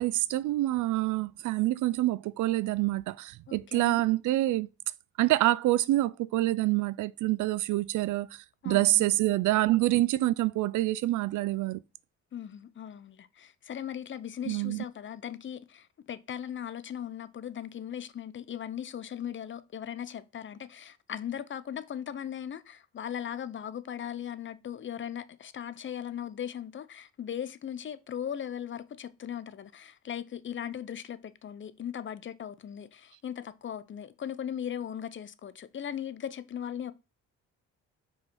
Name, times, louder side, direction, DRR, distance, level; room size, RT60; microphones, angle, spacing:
voice 1, 0.0-4.7 5.2-11.8 14.5-14.8, right 16 dB, 80° right, 0.5 m, -26 dB
voice 2, 3.5-4.0 8.6-9.2 9.5-9.6 12.3-36.9, left 9 dB, 40° left, 0.6 m, -38 dB
4.9 x 4.3 x 4.5 m
cardioid pair, 90°, 30 cm